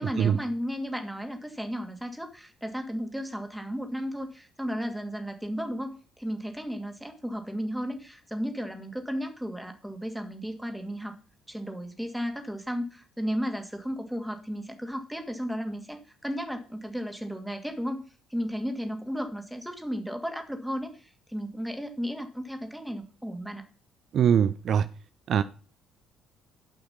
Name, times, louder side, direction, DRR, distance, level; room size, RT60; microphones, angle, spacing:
voice 1, 0.0-11.1 11.5-18.0 18.3-23.6, equal, 5° right, 2.5 m, -34 dB
voice 2, 24.1-24.9 25.3-25.4, right 8 dB, 55° right, 0.4 m, -22 dB
12.0 x 5.8 x 5.8 m
figure-of-eight pair, 50°, 0 cm